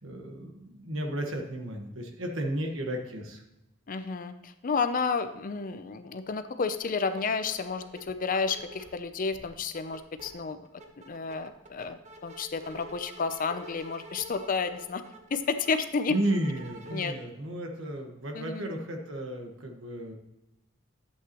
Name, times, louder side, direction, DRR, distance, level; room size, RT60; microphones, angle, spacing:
voice 1, 0.0-3.4 16.1-20.1, right 1 dB, 80° right, 3 dB, 1.4 m, -33 dB
voice 2, 3.9-10.6 11.1-15.0 15.3-16.1 16.9-17.1 18.3-18.7, left 5 dB, 45° left, 10 dB, 0.5 m, -31 dB
sound 1, 6.8-6.9 7.1-9.0 9.3-10.3 10.6-17.1, right 1 dB, 35° right, 1.1 m, -48 dB
11.0 x 8.1 x 3.0 m, 0.91 s
head